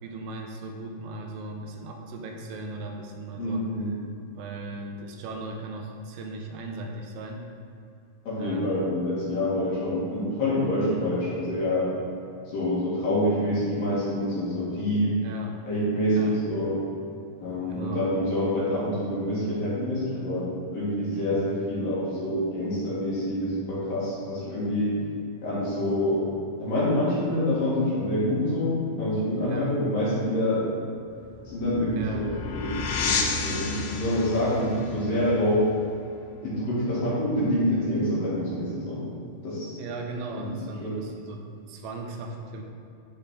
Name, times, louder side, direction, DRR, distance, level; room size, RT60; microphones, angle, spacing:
voice 1, 0.0-3.7 4.4-7.5 8.4-8.9 10.8-11.1 15.2-15.6 16.2-16.4 17.7-18.1 21.1-21.4 25.0-25.1 29.4-29.8 31.9-32.3 36.4-36.6 39.8-42.6, right 2 dB, 85° right, 2 dB, 3.5 m, -38 dB
voice 2, 3.4-3.9 8.3-12.0 12.5-15.2 15.7-16.8 17.4-25.0 25.4-26.2 26.6-30.7 31.5-35.7 36.4-39.0 39.4-39.8 40.8-40.9, left 1 dB, 50° left, -10 dB, 3.8 m, -26 dB
sound 1, 31.1-36.5, left 4 dB, 85° left, 2.4 m, -32 dB
14.0 x 5.6 x 3.8 m, 2.6 s
omnidirectional pair, 5.9 m